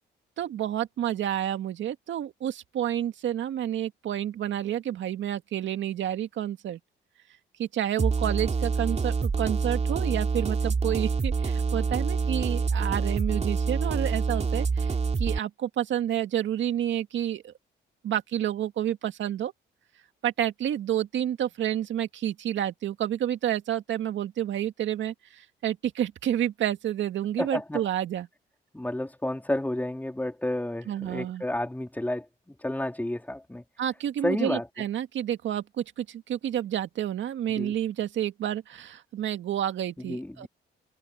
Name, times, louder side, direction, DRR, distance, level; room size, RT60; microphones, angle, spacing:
voice 1, 0.4-6.8 7.6-17.5 18.0-19.5 20.2-28.3 30.9-31.4 33.8-40.5, right 11 dB, 70° right, 2.0 m, -29 dB
sound 1, 8.0-15.4, right 4 dB, 35° right, 3.0 m, -26 dB
voice 2, 27.4-27.8 28.7-33.6 34.2-34.7 37.6-37.7 40.0-40.5, left 1 dB, 10° left, 3.9 m, -31 dB
cardioid pair, 90°, 20 cm